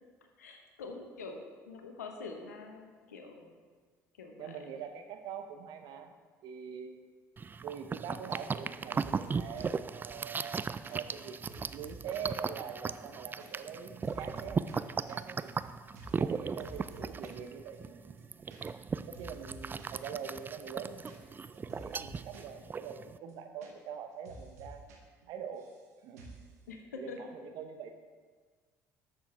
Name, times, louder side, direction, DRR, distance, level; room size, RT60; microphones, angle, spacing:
voice 1, 0.4-3.6 4.2-4.8 26.7-27.2, left 4 dB, 85° left, 3 dB, 1.1 m, -45 dB
voice 2, 4.4-6.1 6.4-7.0 7.6-15.5 16.2-18.2 19.0-24.9 25.3-25.7 26.0-26.4 26.9-27.9, right 7 dB, 60° right, 6 dB, 1.0 m, -44 dB
sound 1, 7.4-23.2, right 5 dB, 25° right, 0.3 m, -37 dB
sound 2, 8.3-8.7 8.9-9.8 10.2-12.3 12.6-12.7 13.0-13.5 13.7-14.7 15.0-15.6 15.9-16.3 16.6-17.5 17.7-17.8 18.1-18.9 19.1-20.0 20.4-22.5 22.8-22.9 23.2-24.0 24.2-25.0 25.2-25.8 26.2-26.5, right 2 dB, 80° right, 1.5 m, -51 dB
13.0 x 6.9 x 3.6 m, 1.5 s
hypercardioid pair, 60°, 9 cm